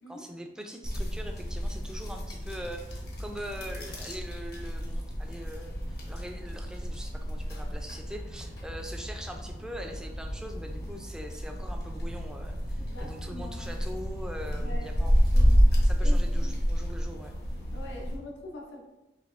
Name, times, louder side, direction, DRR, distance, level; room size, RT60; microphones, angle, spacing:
voice 1, 0.1-15.1 15.8-17.3, equal, 5° right, 3 dB, 0.3 m, -42 dB
sound 1, 0.8-18.2, equal, 55° left, 0.9 m, -29 dB
voice 2, 12.8-13.7 14.6-16.5 17.7-18.8, left 1 dB, 80° left, 0 dB, 0.7 m, -44 dB
5.1 x 3.0 x 2.5 m, 0.96 s
head